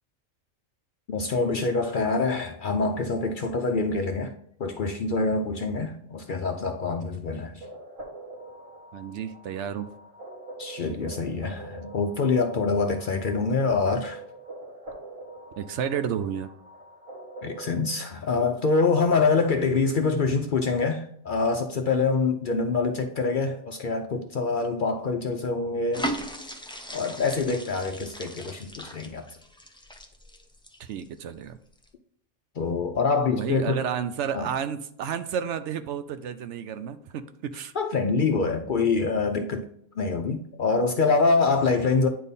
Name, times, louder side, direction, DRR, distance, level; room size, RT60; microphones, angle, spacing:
voice 1, 1.1-4.3 4.6-7.5 10.6-14.2 17.4-26.1 26.9-29.2 32.6-33.8 34.3-34.5 37.8-39.7 40.0-42.1, left 4 dB, 55° left, 0.6 m, -25 dB
sound 1, 7.6-17.9, right 2 dB, 40° right, 1.7 m, -44 dB
voice 2, 8.9-9.9 15.6-16.5 30.8-31.6 33.3-37.7, right 8 dB, 70° right, 0.8 m, -31 dB
sound 2, 25.9-31.3 31.7-31.9, equal, 5° left, 0.5 m, -37 dB
9.4 x 3.5 x 4.1 m
omnidirectional pair, 1.3 m